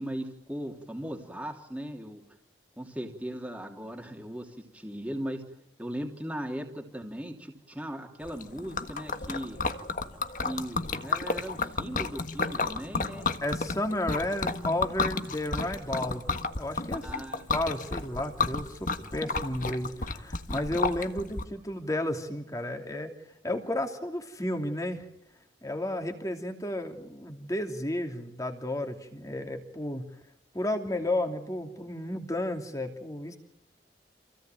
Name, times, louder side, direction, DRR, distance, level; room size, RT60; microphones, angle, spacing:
voice 1, 0.0-2.2 2.8-5.4 5.8-9.6 10.4-13.3 17.0-17.5, equal, 5° right, 1 dB, 3.0 m, -38 dB
Liquid, 8.3-21.4, left 4 dB, 45° left, 1.6 m, -32 dB
voice 2, 13.4-16.2 16.6-17.2 17.5-23.1 23.4-25.0 25.6-30.1 30.5-33.4, left 1 dB, 20° left, 4 dB, 2.8 m, -32 dB
28.0 x 17.0 x 9.2 m, 0.87 s
head